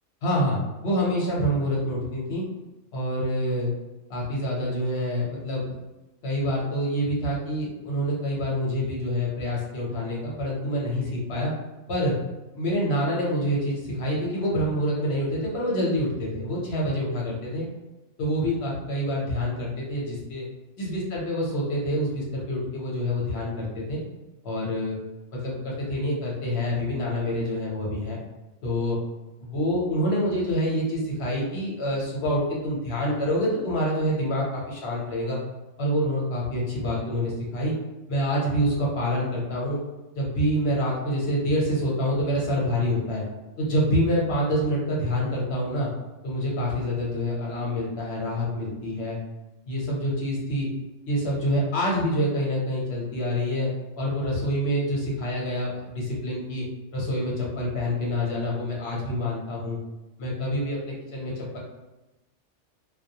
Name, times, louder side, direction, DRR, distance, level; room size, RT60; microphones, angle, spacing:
voice 1, 0.2-2.5 2.9-3.7 4.1-5.6 6.2-11.5 11.9-12.1 12.5-17.7 18.2-20.5 20.8-24.0 24.4-25.0 25.3-28.2 28.6-29.0 29.4-35.4 35.8-37.7 38.1-39.8 40.2-43.3 43.6-45.9 46.2-49.2 49.7-50.7 51.1-53.7 54.0-56.6 56.9-59.8 60.2-61.6, equal, 60° left, -4 dB, 1.0 m, -26 dB
2.3 x 2.1 x 2.7 m, 1.0 s
omnidirectional pair, 1.3 m